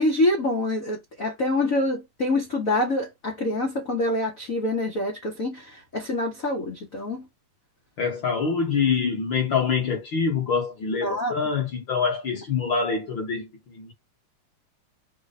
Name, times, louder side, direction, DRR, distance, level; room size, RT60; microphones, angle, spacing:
voice 1, 0.0-7.3 11.0-11.4, left 1 dB, 85° left, 0.7 m, -26 dB
voice 2, 8.0-13.9, left 5 dB, 50° left, 1.6 m, -25 dB
5.3 x 2.4 x 4.1 m
omnidirectional pair, 3.4 m